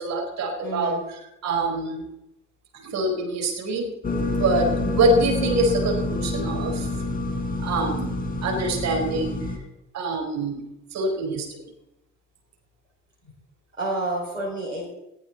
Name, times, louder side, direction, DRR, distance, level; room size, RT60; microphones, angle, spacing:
voice 1, 0.0-2.0 2.8-3.9 4.3-6.9 7.6-8.1 8.4-9.5 9.9-11.6, right 2 dB, 45° right, 2 dB, 4.9 m, -25 dB
voice 2, 0.6-1.1 8.3-8.5 13.3-13.4 13.8-14.9, right 2 dB, 90° right, -5 dB, 5.0 m, -30 dB
sound 1, 4.0-9.6, left 2 dB, 20° left, 4.7 m, -27 dB
19.5 x 16.0 x 4.2 m, 0.87 s
figure-of-eight pair, 55°, 37 cm